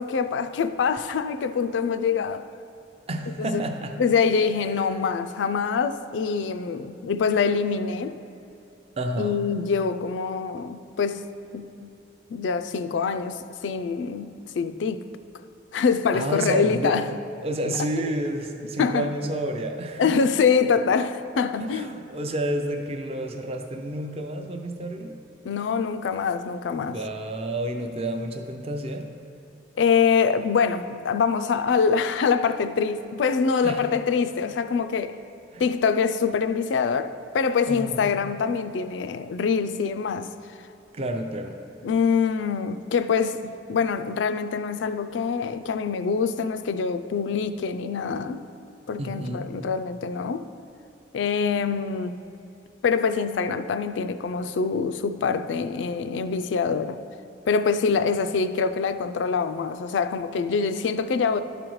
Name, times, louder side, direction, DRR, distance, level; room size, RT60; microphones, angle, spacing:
voice 1, 0.0-2.5 3.4-3.6 4.0-8.2 9.2-11.2 11.5-11.9 12.3-15.0 15.7-17.1 18.8-19.1 20.0-22.0 25.4-27.0 29.8-35.2 35.6-40.3 41.8-48.4 48.9-50.5 51.1-52.1 52.8-57.0 57.5-61.4, left 5 dB, 85° left, 0.4 m, -25 dB
voice 2, 3.1-4.0 9.0-9.4 16.1-17.0 17.4-20.2 21.7-25.2 26.9-29.1 33.6-33.8 35.5-35.7 37.7-38.2 40.9-41.6 49.0-49.6, right 1 dB, 35° right, 0.4 m, -30 dB
12.0 x 5.1 x 3.1 m
head